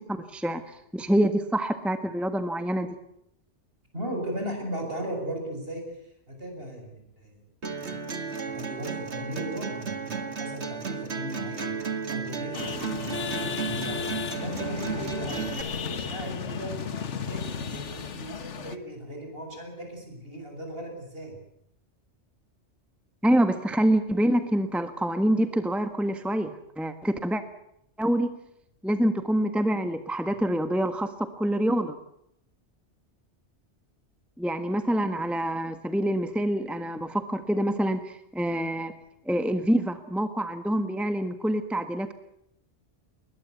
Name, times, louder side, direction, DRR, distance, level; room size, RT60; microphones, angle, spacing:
voice 1, 0.3-2.9 23.2-27.4 28.0-28.3 28.8-32.0 34.4-38.9 39.2-42.1, right 1 dB, ahead, 9 dB, 1.3 m, -26 dB
voice 2, 3.9-5.8 6.3-7.4 7.8-8.0 8.4-11.7 12.0-14.0 14.3-16.7 17.1-21.4, equal, 55° right, 3 dB, 7.6 m, -37 dB
sound 1, 7.6-15.6, right 5 dB, 70° right, 2.3 m, -34 dB
sound 2, 12.5-18.8, left 6 dB, 80° left, 1.6 m, -34 dB
21.5 x 20.5 x 8.2 m, 0.77 s
omnidirectional pair, 1.2 m